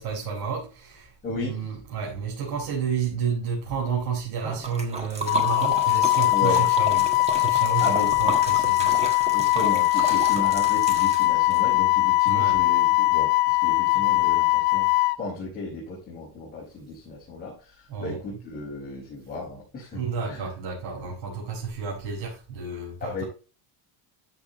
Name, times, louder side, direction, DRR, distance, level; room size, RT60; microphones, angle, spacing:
voice 1, 0.0-9.2 9.9-10.3 12.3-12.6 13.9-14.1 17.9-18.2 19.9-23.2, right 6 dB, 70° right, 5.2 m, -31 dB
voice 2, 1.2-1.6 6.3-6.7 7.8-8.3 9.3-20.5 23.0-23.2, left 3 dB, 20° left, 5.0 m, -35 dB
Liquid, 4.4-11.6, right 2 dB, 15° right, 1.5 m, -32 dB
Wind instrument woodwind instrument, 5.3-15.2, left 20 dB, 65° left, 0.8 m, -21 dB
13.5 x 7.0 x 3.0 m
cardioid pair, 170°, 43 cm